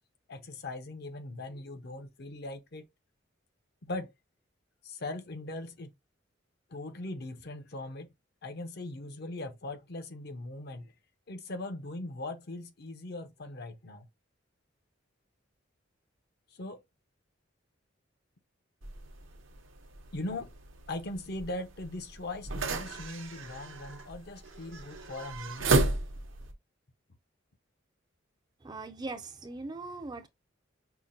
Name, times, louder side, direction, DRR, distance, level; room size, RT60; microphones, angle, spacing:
voice 1, 0.3-2.9 3.8-4.1 4.8-5.9 6.7-8.1 8.4-10.9 11.3-14.1 16.5-16.8 20.1-20.5 20.9-25.8, left 2 dB, 55° left, 0.7 m, -40 dB
sound 1, 18.8-26.5, right 2 dB, 80° right, 0.9 m, -34 dB
voice 2, 28.6-30.3, right 3 dB, 20° right, 0.4 m, -40 dB
5.7 x 2.2 x 2.5 m
head